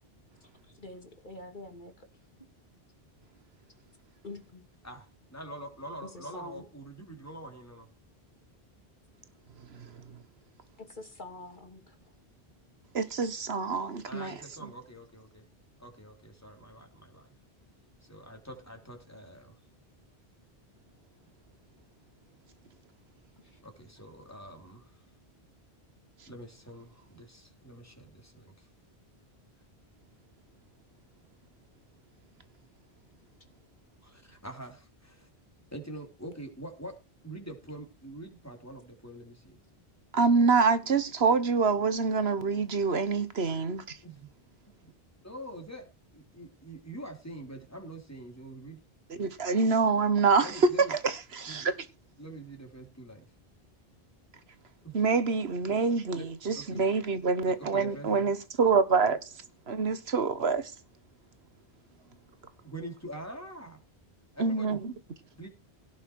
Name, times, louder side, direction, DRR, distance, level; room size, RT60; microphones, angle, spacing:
voice 1, 0.4-2.1 4.2-4.6 6.0-6.7 10.8-12.0 23.4-23.6, left 2 dB, 50° left, 2.8 m, -46 dB
voice 2, 4.8-7.9 14.0-15.4 15.8-17.3 18.0-19.6 23.6-25.0 26.3-28.7 34.0-35.3 35.7-36.9 37.2-39.6 44.0-44.3 45.2-45.8 46.1-48.8 49.1-49.3 50.4-50.9 51.5-51.7 52.2-53.3 54.8-55.0 55.7-55.8 56.1-56.3 56.5-56.9 57.4-58.3 62.6-63.8 64.3-64.8 65.4-65.5, right 1 dB, 15° left, 3.5 m, -45 dB
voice 3, 12.9-14.3 14.6-14.7 40.1-44.0 49.2-51.7 54.9-59.2 59.7-60.7 64.4-64.9, right 4 dB, 85° right, 1.6 m, -26 dB
17.0 x 6.4 x 4.7 m
omnidirectional pair, 1.0 m